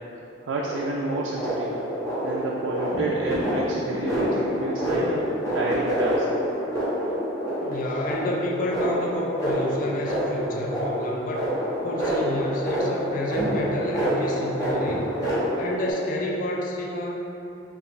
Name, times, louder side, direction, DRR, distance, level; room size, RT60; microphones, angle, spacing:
voice 1, 0.4-1.8 2.2-5.3 5.5-6.3, right 2 dB, 80° right, -3 dB, 0.3 m, -30 dB
sound 1, 0.6-15.9, equal, 15° left, 0.9 m, -27 dB
voice 2, 7.6-11.5 11.8-15.0 15.4-17.2, left 1 dB, 45° left, -2 dB, 0.4 m, -29 dB
5.4 x 2.4 x 3.2 m, 2.9 s
head